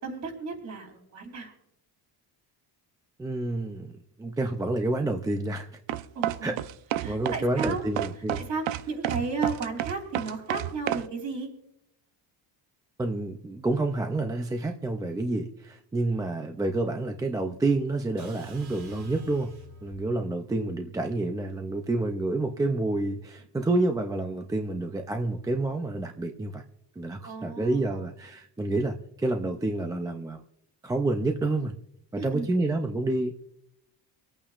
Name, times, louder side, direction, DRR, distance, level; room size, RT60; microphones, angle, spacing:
voice 1, 0.0-1.5 6.1-6.5 7.0-7.8 8.3-11.5 27.2-28.0 32.1-32.5, right 4 dB, 40° right, 1 dB, 3.1 m, -34 dB
voice 2, 3.2-5.7 6.4-6.5 7.1-8.4 13.0-19.5 19.8-26.6 27.0-30.4 30.8-31.8 32.1-33.3, right 2 dB, 10° right, 4 dB, 0.3 m, -28 dB
sound 1, 5.9-11.1, right 13 dB, 90° right, 0.7 m, -30 dB
sound 2, 18.2-20.1, right 1 dB, 60° right, 2.3 m, -47 dB
24.5 x 8.7 x 2.4 m, 0.78 s
cardioid pair, 180°, 44 cm